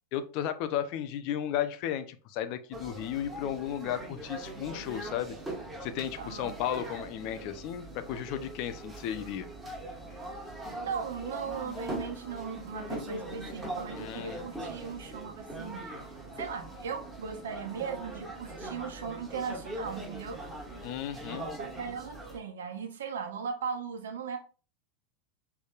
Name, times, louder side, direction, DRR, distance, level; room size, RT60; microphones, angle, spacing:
voice 1, 0.1-5.4 5.8-9.5 14.0-14.5 20.8-21.5, left 10 dB, 55° left, 10 dB, 0.7 m, -34 dB
sound 1, 2.7-22.4, right 1 dB, 15° right, 1.9 m, -41 dB
voice 2, 6.2-6.6 10.8-15.9 16.4-20.4 21.6-24.4, right 6 dB, 75° right, 5 dB, 1.1 m, -38 dB
6.2 x 3.4 x 2.5 m, 0.37 s
hypercardioid pair, 95°, 0 cm